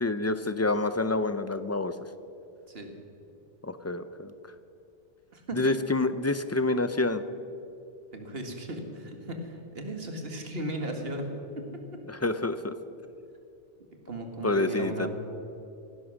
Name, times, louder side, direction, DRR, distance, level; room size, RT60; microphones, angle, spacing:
voice 1, 0.0-1.9 3.6-4.3 5.5-7.2 12.1-12.7 14.4-15.1, left 2 dB, 25° left, 12 dB, 0.4 m, -27 dB
voice 2, 8.1-11.3 11.6-11.7 11.9-12.0 14.1-15.1, right 1 dB, 70° right, 4 dB, 2.0 m, -36 dB
17.0 x 11.0 x 6.3 m, 2.8 s
omnidirectional pair, 1.0 m